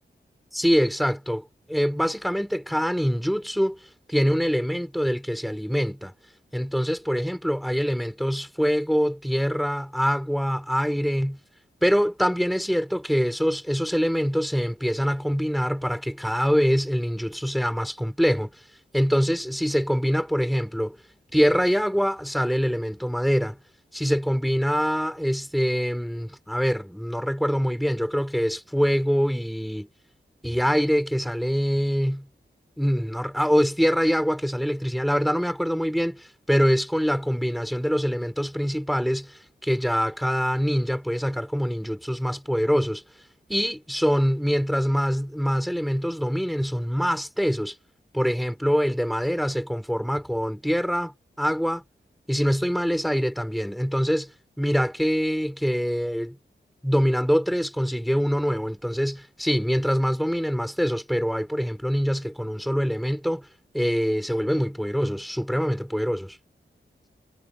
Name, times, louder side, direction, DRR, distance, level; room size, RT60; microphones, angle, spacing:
voice 1, 0.5-6.1 6.5-11.4 11.8-18.5 18.9-21.0 21.3-23.6 23.9-29.9 30.4-32.3 32.8-43.0 43.5-47.8 48.1-51.8 52.3-54.3 54.6-56.4 56.8-63.5 63.7-66.4, equal, ahead, 4.8 m, -24 dB
wide cardioid pair, 70°, 19 cm